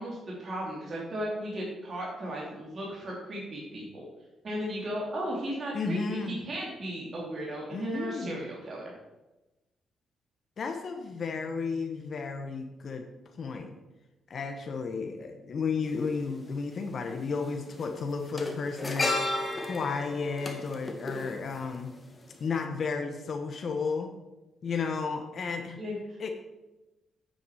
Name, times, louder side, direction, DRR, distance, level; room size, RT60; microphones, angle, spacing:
voice 1, 0.0-4.1 4.4-6.2 6.4-8.9 25.8-26.2, equal, 45° right, -4 dB, 3.0 m, -35 dB
voice 2, 5.7-6.4 7.7-8.4 10.6-13.1 13.4-13.8 14.3-21.9 22.4-24.1 24.6-25.8 26.2-26.3, left 4 dB, 55° left, 4 dB, 1.1 m, -33 dB
sound 1, 15.9-16.0 17.2-17.4 17.7-22.0 22.3-22.5, left 2 dB, 25° left, 1.7 m, -33 dB
9.4 x 7.0 x 5.0 m, 1.0 s
cardioid pair, 80°, 0 cm